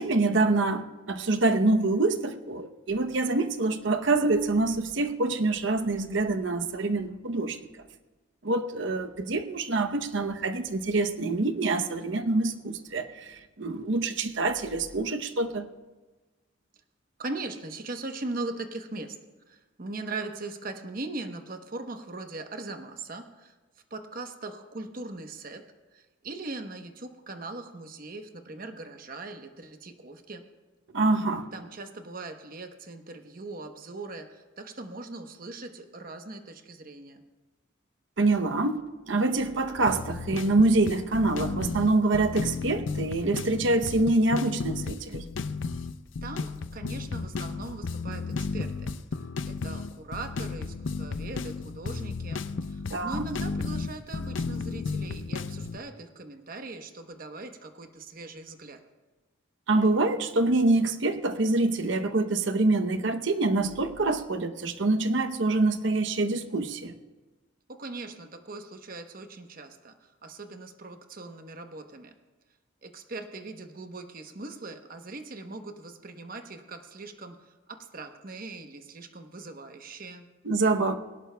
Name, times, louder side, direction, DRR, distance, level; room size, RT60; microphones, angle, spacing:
voice 1, 0.0-7.7 8.4-15.7 30.9-31.5 38.2-45.2 52.9-53.3 59.7-66.9 80.4-81.0, right 2 dB, 70° right, 7 dB, 0.8 m, -26 dB
voice 2, 17.2-19.2 19.5-23.5 23.9-25.7 25.9-30.4 31.5-37.2 46.2-48.9 49.4-58.8 67.7-72.1 72.8-80.3, right 2 dB, 45° right, 6 dB, 1.0 m, -40 dB
sound 1, 39.9-55.8, left 4 dB, 70° left, 0.5 m, -33 dB
21.0 x 18.0 x 2.3 m, 1.2 s
head